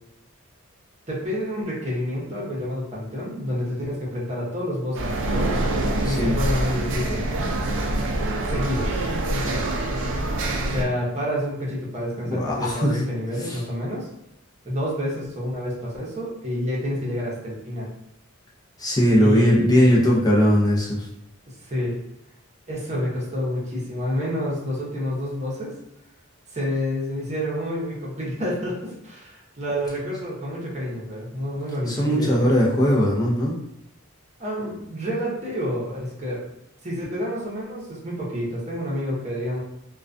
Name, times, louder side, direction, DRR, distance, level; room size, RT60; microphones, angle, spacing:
voice 1, 1.1-5.6 6.0-7.3 8.5-9.0 9.3-9.7 10.6-14.1 14.6-17.9 19.2-19.7 21.5-21.9 22.7-25.7 26.5-32.5 34.4-36.4 36.8-39.6, equal, 30° right, -5 dB, 0.8 m, -28 dB
sound 1, 4.9-10.8, right 1 dB, 65° right, 0.4 m, -25 dB
voice 2, 12.3-13.0 13.4-13.6 18.8-21.1 31.9-33.6, equal, 20° left, -4 dB, 0.5 m, -19 dB
2.2 x 2.2 x 2.5 m, 0.82 s
head